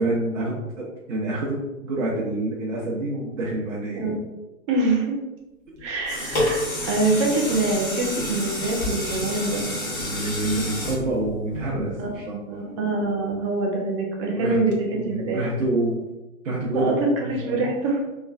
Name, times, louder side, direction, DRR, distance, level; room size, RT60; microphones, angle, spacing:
voice 1, 0.0-4.0 10.0-12.6 14.3-14.6 14.9-16.0 16.4-17.0 17.2-17.7, right 2 dB, 65° right, -5 dB, 0.8 m, -27 dB
voice 2, 4.7-5.2 5.8-9.6 12.0-15.4 16.7-16.9 17.2-18.0, right 3 dB, 25° right, -1 dB, 0.5 m, -25 dB
sound 1, 5.8-12.1 12.6-12.7, left 1 dB, 25° left, 1.3 m, -29 dB
3.2 x 2.3 x 2.3 m, 1.0 s
figure-of-eight pair, 120°, 42 cm